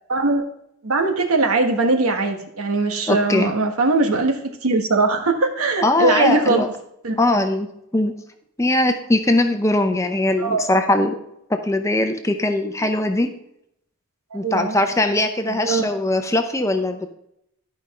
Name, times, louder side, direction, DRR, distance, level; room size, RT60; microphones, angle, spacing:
voice 1, 0.1-0.5 0.8-6.6 7.0-7.1 10.4-10.7 14.3-14.7 15.5-15.9, right 3 dB, 85° right, 4 dB, 1.4 m, -20 dB
voice 2, 3.1-3.5 5.8-6.7 7.2-7.7 7.9-8.1 8.6-11.2 11.5-13.3 14.3-17.1, left 1 dB, 15° left, 6 dB, 0.6 m, -20 dB
12.0 x 5.2 x 4.2 m, 0.77 s
head